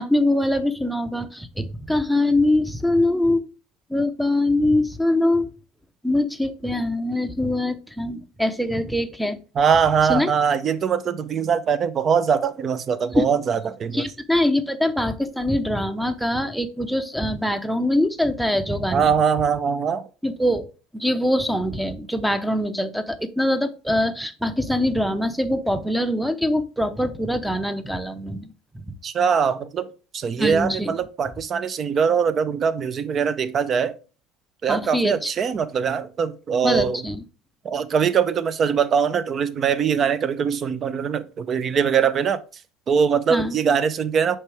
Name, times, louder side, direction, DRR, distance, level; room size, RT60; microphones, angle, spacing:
voice 1, 0.0-3.4 3.9-5.5 6.0-9.4 10.1-10.3 13.1-13.3 13.9-19.1 20.2-20.7 20.9-28.5 28.9-29.0 30.4-30.9 34.7-35.3 36.6-37.2 43.3-43.5, left 1 dB, ahead, 0.7 m, -23 dB
voice 2, 9.6-14.1 18.9-20.1 29.0-29.9 30.1-33.9 34.6-37.0 37.6-42.4 42.9-44.4, right 7 dB, 40° right, 0.6 m, -22 dB
6.5 x 4.6 x 3.3 m
supercardioid pair, 110°, 0 cm